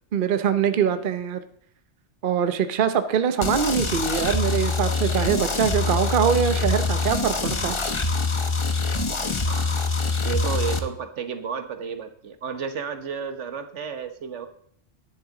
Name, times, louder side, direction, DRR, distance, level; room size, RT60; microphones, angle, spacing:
voice 1, 0.1-1.4 2.2-7.8, right 7 dB, 50° right, 10 dB, 0.9 m, -23 dB
voice 2, 0.6-1.0 9.4-9.9 10.2-14.5, right 6 dB, 85° right, 9 dB, 1.4 m, -32 dB
sound 1, 3.4-10.8, left 3 dB, 30° left, 0.9 m, -25 dB
11.0 x 10.0 x 3.8 m, 0.67 s
omnidirectional pair, 1.2 m